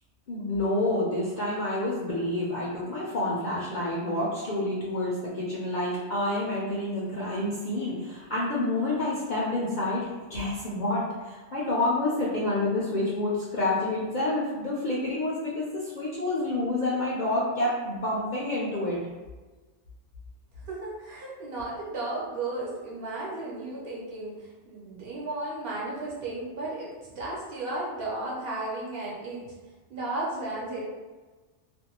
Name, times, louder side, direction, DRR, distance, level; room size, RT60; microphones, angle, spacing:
voice 1, 0.3-19.0, left 2 dB, 55° left, -7 dB, 0.5 m, -28 dB
voice 2, 20.6-29.5 29.9-30.8, right 2 dB, 55° right, -6 dB, 0.9 m, -34 dB
2.5 x 2.2 x 2.8 m, 1.3 s
omnidirectional pair, 1.2 m